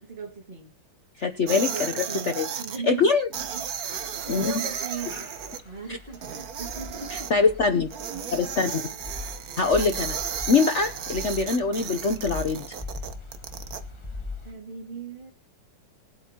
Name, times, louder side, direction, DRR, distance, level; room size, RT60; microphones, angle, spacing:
voice 1, 0.0-0.7 1.5-5.3 5.6-7.4 14.4-15.3, right 4 dB, 25° right, 2.3 m, -38 dB
voice 2, 1.2-1.7 1.9-2.0 2.4-2.5 2.9-3.3 4.3-4.5 7.1-7.9 8.3-8.8 9.6-10.2 10.5-12.6, left 4 dB, 55° left, 0.9 m, -23 dB
sound 1, 1.5-2.8 3.3-5.6 6.1-7.3 7.9-13.8, right 8 dB, 55° right, 1.3 m, -34 dB
sound 2, 3.3-14.5, left 3 dB, 15° left, 1.2 m, -41 dB
21.5 x 8.1 x 2.9 m
omnidirectional pair, 2.1 m